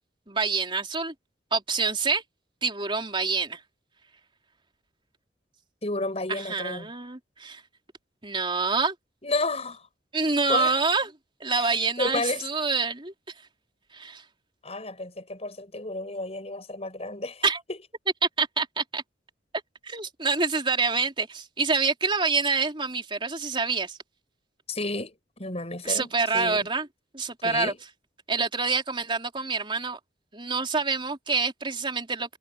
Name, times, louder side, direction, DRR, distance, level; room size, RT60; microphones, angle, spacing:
voice 1, 0.3-1.1 1.5-2.2 2.6-3.6 6.3-7.6 8.2-8.9 10.1-11.1 11.4-13.1 13.9-14.2 17.4-17.6 18.4-19.0 19.8-24.0 25.8-26.9 27.1-27.7 28.3-30.0 30.3-32.4, right 4 dB, 30° right, 3.7 m, -26 dB
voice 2, 5.8-6.9 9.2-9.8 10.5-10.8 11.5-12.5 14.6-17.4 24.7-26.7 27.4-27.8, left 2 dB, 35° left, 7.9 m, -31 dB
head